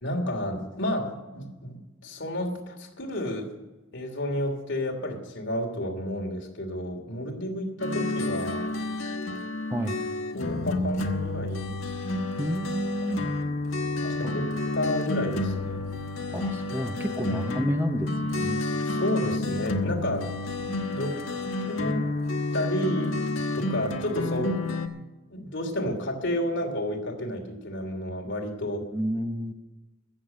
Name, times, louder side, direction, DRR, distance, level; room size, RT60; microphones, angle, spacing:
voice 1, 0.0-3.5 3.9-8.7 10.3-11.7 13.1-13.3 14.0-14.4 14.7-15.8 17.3-17.4 18.8-20.3 20.9-21.2 21.7-22.1 22.5-23.2 23.5-24.7 25.3-28.8, left 1 dB, 65° left, 1 dB, 2.9 m, -31 dB
sound 1, 7.8-24.9, left 2 dB, 80° left, 1.4 m, -30 dB
voice 2, 12.4-13.3 14.2-14.3 16.3-18.7 28.9-29.5, equal, 10° right, 6 dB, 0.9 m, -30 dB
15.5 x 7.3 x 7.8 m, 1.1 s
head